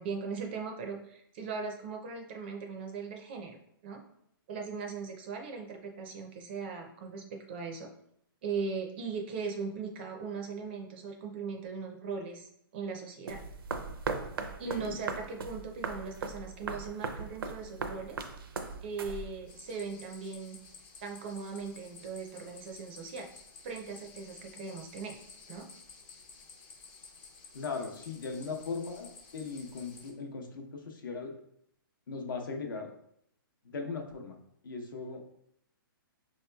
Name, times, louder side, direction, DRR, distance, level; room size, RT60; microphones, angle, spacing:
voice 1, 0.0-3.6 3.8-4.0 4.5-7.9 8.4-13.4 14.6-18.2 18.8-20.6 21.0-23.3 23.6-25.2 25.5-25.6, right 5 dB, 30° right, 2 dB, 0.4 m, -39 dB
sound 1, 13.3-19.6, right 4 dB, 80° right, 0.5 m, -39 dB
voice 2, 14.7-15.0 27.5-31.3 32.1-32.9 33.6-34.4 34.6-35.2, left 4 dB, 65° left, 3 dB, 0.8 m, -38 dB
sound 2, 19.5-30.1, left 4 dB, 30° left, 0.5 m, -53 dB
5.8 x 2.9 x 2.2 m, 0.72 s
hypercardioid pair, 165°, 12 cm